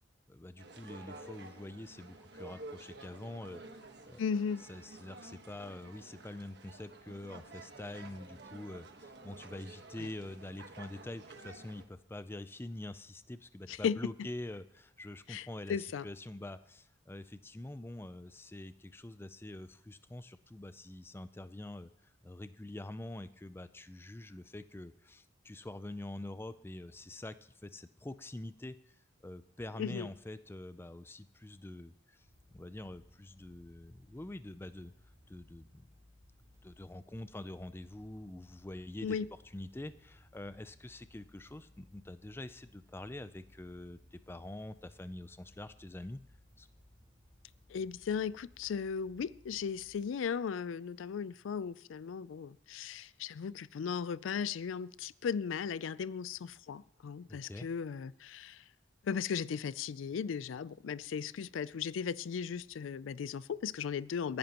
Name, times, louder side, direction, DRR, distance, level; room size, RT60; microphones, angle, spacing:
voice 1, 0.3-3.6 4.1-4.2 4.6-28.9 29.2-32.3 32.5-34.9 35.3-35.9 36.6-39.2 39.5-46.2 46.6-46.7 57.3-57.7, left 1 dB, 10° left, 0.4 m, -45 dB
sound 1, 0.6-11.8, right 2 dB, 60° right, 1.3 m, -51 dB
voice 2, 4.2-4.6 10.0-10.1 13.7-14.0 15.3-16.0 29.8-30.1 39.0-39.3 47.7-58.6 59.0-64.4, left 6 dB, 90° left, 0.4 m, -36 dB
sound 2, 32.2-50.0, left 1 dB, 20° right, 5.7 m, -63 dB
28.0 x 10.5 x 2.9 m
head